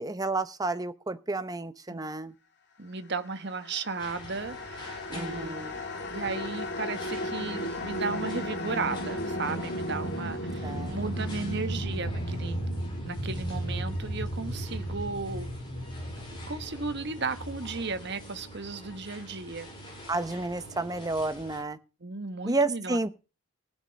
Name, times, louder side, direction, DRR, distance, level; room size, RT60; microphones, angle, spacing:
voice 1, 0.0-2.3 5.1-5.7 10.6-11.0 20.1-21.8 22.4-23.1, right 2 dB, 20° right, 0.9 m, -31 dB
voice 2, 2.8-5.8 6.1-15.5 16.5-19.7 22.0-23.0, right 4 dB, 55° right, 1.3 m, -35 dB
sound 1, 3.5-18.7, equal, 55° left, 2.7 m, -35 dB
sound 2, 4.0-21.6, equal, 25° left, 6.7 m, -47 dB
16.0 x 10.0 x 5.3 m
head